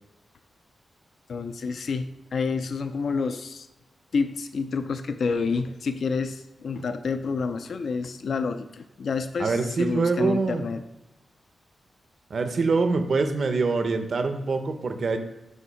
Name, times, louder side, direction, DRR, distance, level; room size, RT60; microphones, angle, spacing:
voice 1, 1.3-3.7 4.1-10.8, left 4 dB, 60° left, 9 dB, 0.3 m, -29 dB
voice 2, 9.4-10.6 12.3-15.2, right 4 dB, 50° right, 7 dB, 0.7 m, -24 dB
7.9 x 2.7 x 5.6 m, 1.0 s
wide cardioid pair, 130°, 0 cm